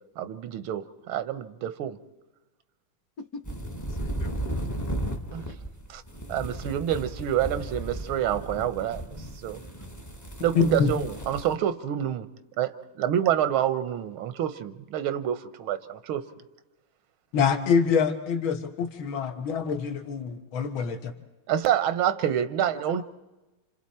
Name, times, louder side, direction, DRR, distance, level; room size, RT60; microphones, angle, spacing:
voice 1, 0.2-2.0 5.3-5.4 5.9-6.0 6.3-9.2 9.4-9.6 10.4-12.3 12.6-12.7 13.0-16.3 21.5-23.0, right 10 dB, 90° right, 11 dB, 1.7 m, -27 dB
sound 1, 3.4-11.5, right 1 dB, 15° left, 0.8 m, -35 dB
voice 2, 4.0-4.7 22.9-23.0, left 5 dB, 50° left, 5 dB, 1.7 m, -40 dB
voice 3, 10.6-10.9 17.3-21.1, left 6 dB, 75° left, 5 dB, 2.2 m, -25 dB
29.5 x 27.0 x 4.3 m, 1.1 s
omnidirectional pair, 2.2 m